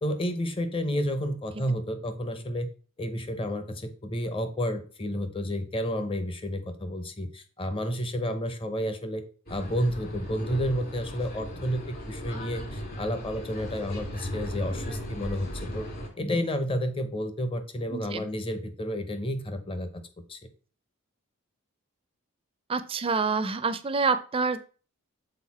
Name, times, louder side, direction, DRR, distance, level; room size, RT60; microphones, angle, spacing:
voice 1, 0.0-2.7 3.0-9.2 9.5-15.8 16.2-20.0 20.3-20.4, equal, 25° left, 9 dB, 0.8 m, -31 dB
sound 1, 9.5-16.1, equal, 45° left, 2.0 m, -37 dB
voice 2, 17.9-18.2 22.7-24.6, right 4 dB, 25° right, 11 dB, 0.5 m, -27 dB
6.5 x 4.2 x 4.2 m, 0.38 s
head